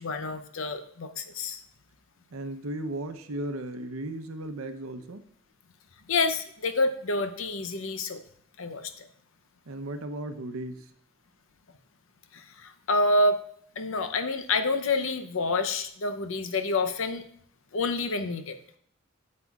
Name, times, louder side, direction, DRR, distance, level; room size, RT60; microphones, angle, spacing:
voice 1, 0.0-1.6 6.1-8.2 8.6-9.1 12.3-13.4 13.8-17.2 17.7-18.6, left 2 dB, 70° left, 9 dB, 0.7 m, -28 dB
voice 2, 2.3-5.2 9.7-10.9, right 1 dB, 90° right, 7 dB, 0.8 m, -35 dB
9.6 x 7.5 x 2.4 m, 0.64 s
head